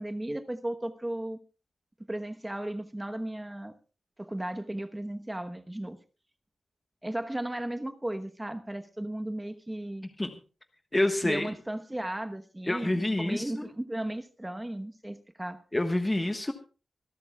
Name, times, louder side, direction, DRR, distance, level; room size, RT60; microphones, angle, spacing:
voice 1, 0.0-1.4 2.1-3.7 4.2-6.0 7.0-10.1 11.2-15.6, right 1 dB, 10° right, 7 dB, 1.1 m, -35 dB
voice 2, 10.9-11.5 12.7-13.7 15.7-16.5, left 1 dB, 15° left, 6 dB, 1.3 m, -27 dB
26.0 x 12.5 x 2.4 m, 0.34 s
wide cardioid pair, 160°, 0 cm